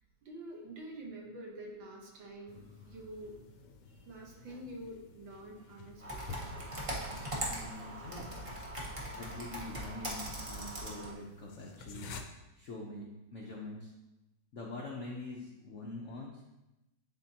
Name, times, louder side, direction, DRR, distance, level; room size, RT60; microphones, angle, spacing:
voice 1, 0.2-3.4 3.9-6.6, right 1 dB, 70° right, -1 dB, 1.9 m, -47 dB
sound 1, 2.5-12.2, left 5 dB, 80° left, 1.4 m, -52 dB
Computer keyboard, 6.0-11.1, right 1 dB, 25° right, 0.7 m, -40 dB
voice 2, 7.4-8.3 9.1-12.1 12.5-13.1 13.3-13.9 14.5-16.4, left 2 dB, 65° left, -2 dB, 0.7 m, -44 dB
10.5 x 3.8 x 2.8 m, 0.96 s
omnidirectional pair, 2.2 m